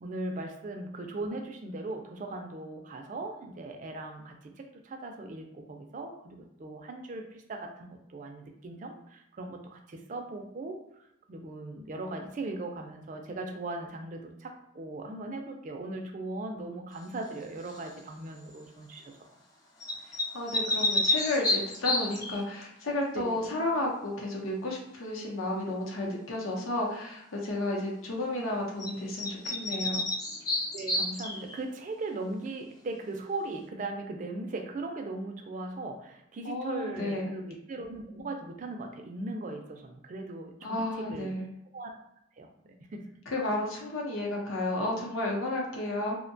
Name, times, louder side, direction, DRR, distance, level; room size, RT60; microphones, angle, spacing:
voice 1, 0.0-11.0 11.3-19.2 23.1-23.5 30.7-41.3 41.7-41.9 42.4-43.1, right 2 dB, 40° right, 4 dB, 0.3 m, -39 dB
sound 1, 17.7-18.0 19.8-22.4 28.8-28.9 29.2-31.6, left 2 dB, 20° left, 0.5 m, -30 dB
voice 2, 20.3-30.0 36.4-37.3 40.6-41.4 43.3-46.2, left 1 dB, 80° left, -1 dB, 0.7 m, -32 dB
2.6 x 2.1 x 2.6 m, 0.80 s
head